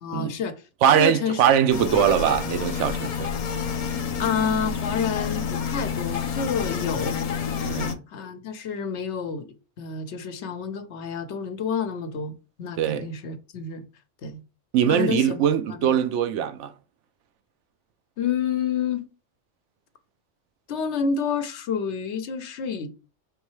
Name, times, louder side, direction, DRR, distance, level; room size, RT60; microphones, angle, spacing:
voice 1, 0.0-0.5 0.9-1.4 4.2-7.2 8.1-9.5 9.8-13.9 14.2-14.4 14.9-15.9 18.2-19.1 20.7-22.9, left 6 dB, 75° left, 1.0 m, -29 dB
voice 2, 0.8-3.3 7.6-8.0 12.8-13.0 14.7-16.7, right 9 dB, 80° right, 0.9 m, -21 dB
sound 1, 1.7-7.9, left 7 dB, 50° left, 0.4 m, -29 dB
5.3 x 3.1 x 3.1 m
omnidirectional pair, 1.2 m